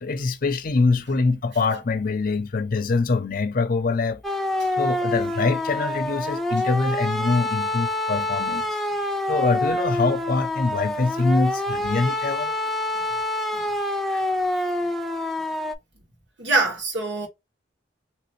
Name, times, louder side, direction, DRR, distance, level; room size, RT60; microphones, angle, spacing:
voice 1, 0.0-4.2 4.8-8.8 9.3-12.5, left 3 dB, 50° left, 0.5 m, -24 dB
sound 1, 4.2-15.7, left 1 dB, ahead, 0.4 m, -26 dB
voice 2, 16.4-17.3, right 3 dB, 85° right, 1.5 m, -24 dB
3.1 x 2.6 x 3.0 m
head